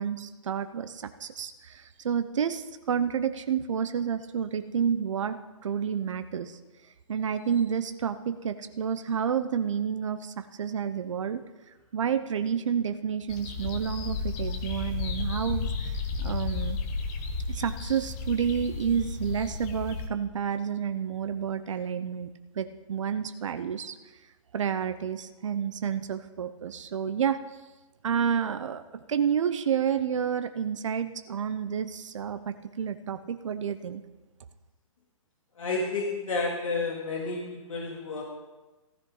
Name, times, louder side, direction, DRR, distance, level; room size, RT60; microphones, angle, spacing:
voice 1, 0.0-6.6 7.1-11.4 11.9-16.8 17.5-23.9 24.5-27.4 28.0-28.8 29.1-34.0, right 7 dB, 60° right, 10 dB, 0.9 m, -30 dB
sound 1, 13.3-20.1, left 4 dB, 30° left, 1.5 m, -33 dB
voice 2, 35.6-38.2, left 3 dB, 70° left, -2 dB, 2.9 m, -31 dB
15.0 x 13.5 x 4.0 m, 1.2 s
figure-of-eight pair, 130°, 18 cm